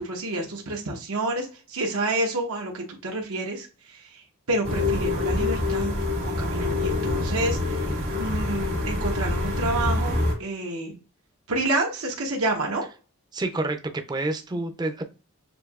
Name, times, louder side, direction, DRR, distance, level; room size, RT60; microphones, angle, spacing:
voice 1, 0.0-4.2 4.5-5.9 6.3-10.9 11.5-12.8 14.5-14.6, right 2 dB, 90° right, 1.0 m, -29 dB
sound 1, 4.6-10.3, left 2 dB, 70° right, 1.6 m, -26 dB
voice 2, 13.3-15.0, right 2 dB, 20° right, 0.4 m, -28 dB
6.6 x 2.7 x 2.3 m
head